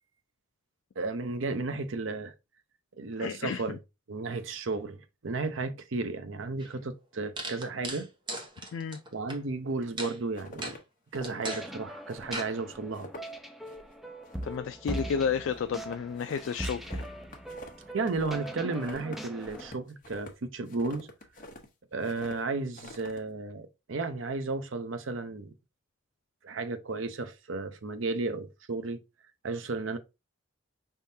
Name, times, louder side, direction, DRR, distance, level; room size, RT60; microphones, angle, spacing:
voice 1, 1.0-2.3 3.0-3.8 4.1-8.1 9.1-10.8 11.1-13.1 17.9-21.1 21.9-25.5 26.4-29.0 29.4-30.0, right 3 dB, 70° right, 0.6 m, -33 dB
voice 2, 3.2-3.8 8.7-9.0 14.4-17.0, left 6 dB, 70° left, 0.3 m, -32 dB
sound 1, 6.6-6.7 7.4-9.4 10.0-10.2 10.6-10.8 11.2-11.7 12.3-12.5, right 2 dB, 25° right, 0.9 m, -37 dB
sound 2, 9.8-10.8 11.1-11.6 12.1-12.5 12.7-13.4 13.7-14.0 14.2-14.7 15.0-18.5 18.8-21.7 22.0-22.4 22.7-23.2, left 1 dB, 40° left, 0.9 m, -46 dB
sound 3, 11.4-19.7, right 1 dB, ahead, 0.4 m, -40 dB
5.4 x 3.6 x 2.7 m
head